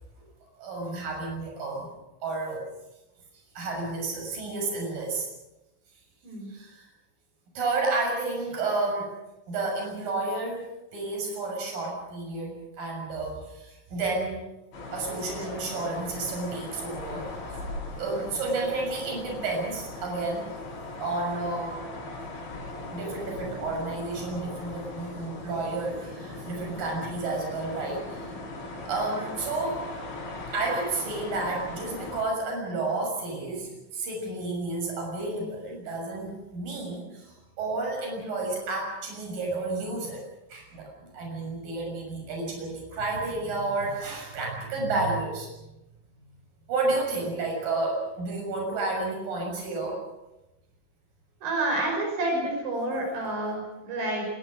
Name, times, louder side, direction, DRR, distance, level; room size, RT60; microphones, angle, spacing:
voice 1, 0.6-1.9 2.2-2.7 3.5-5.3 6.5-6.9 7.5-9.1 9.5-10.7 10.9-14.4 14.9-17.6 18.0-20.5 21.0-22.0 22.9-28.4 28.9-29.9 30.5-45.6 46.7-50.0, right 3 dB, 50° right, 1 dB, 8.0 m, -31 dB
sound 1, 14.7-32.2, left 2 dB, 75° left, 10.5 m, -39 dB
voice 2, 51.4-54.3, right 2 dB, 75° right, 2 dB, 8.0 m, -29 dB
26.0 x 20.5 x 6.3 m, 0.97 s
omnidirectional pair, 5.3 m